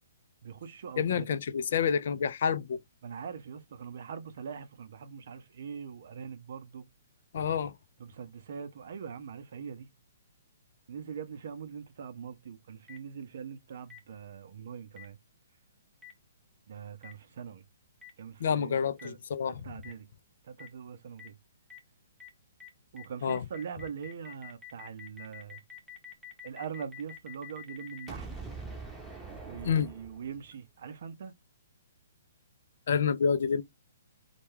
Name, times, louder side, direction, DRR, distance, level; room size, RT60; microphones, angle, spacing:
voice 1, 0.4-1.3 3.0-6.9 8.0-9.9 10.9-15.2 16.7-17.6 18.2-19.2 19.5-20.1 20.4-21.4 22.9-25.6 26.4-28.3 29.4-31.3, right 7 dB, 60° right, 0.6 m, -42 dB
voice 2, 1.0-2.8 7.3-7.7 18.4-19.6 23.2-23.5 29.6-29.9 32.9-33.6, left 7 dB, 60° left, 0.3 m, -28 dB
Boom, 12.9-13.0 13.9-14.0 15.0-15.1 16.0-16.1 17.0-17.1 18.0-18.1 19.0-19.1 19.8-19.9 20.6-20.7 21.2-21.3 21.7-21.8 22.2-22.3 22.6-22.7 23.0-30.5, left 1 dB, 5° right, 0.7 m, -45 dB
2.2 x 2.2 x 3.1 m
hypercardioid pair, 130°, 0 cm